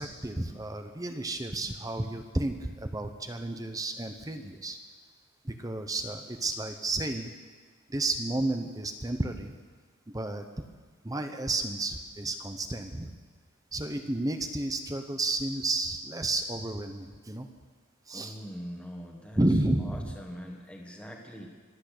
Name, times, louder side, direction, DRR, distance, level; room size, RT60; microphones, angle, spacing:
voice 1, 0.0-4.8 5.4-7.3 7.9-9.5 10.1-10.4 11.0-13.2 13.7-17.5 18.1-18.4 19.4-20.1, right 2 dB, 15° right, 7 dB, 0.8 m, -31 dB
voice 2, 18.1-19.4 19.8-21.5, equal, 5° left, 0 dB, 1.5 m, -42 dB
24.0 x 8.4 x 6.6 m, 1.5 s
head